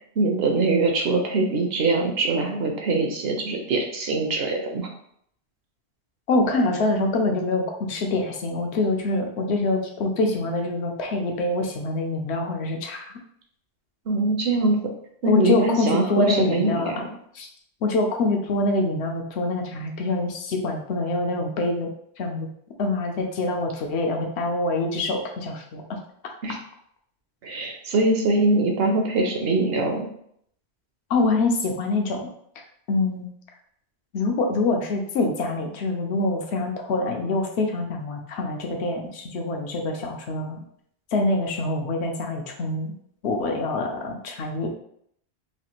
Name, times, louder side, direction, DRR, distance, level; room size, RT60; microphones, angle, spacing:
voice 1, 0.2-4.9 14.1-14.8 15.2-16.9 26.4-26.6 27.4-30.1, right 2 dB, 65° right, 2 dB, 0.8 m, -23 dB
voice 2, 6.3-13.1 15.3-16.9 17.3-17.5 17.8-21.9 22.2-22.5 22.8-26.0 31.1-32.3 32.9-33.3 34.1-40.6 41.1-42.9 43.2-44.8, left 2 dB, 80° left, 2 dB, 0.9 m, -25 dB
3.2 x 2.4 x 2.9 m, 0.68 s
omnidirectional pair, 1.1 m